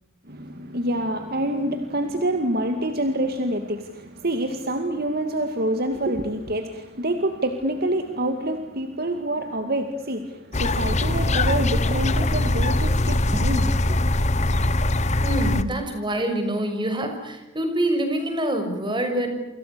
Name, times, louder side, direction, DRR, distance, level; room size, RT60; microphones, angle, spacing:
voice 1, 0.3-14.0, right 1 dB, 50° right, 6 dB, 2.3 m, -27 dB
sound 1, 10.5-15.6, left 1 dB, 35° left, 1.3 m, -22 dB
voice 2, 15.2-19.3, right 1 dB, 25° right, 6 dB, 6.2 m, -26 dB
29.0 x 26.5 x 7.0 m, 1.0 s
head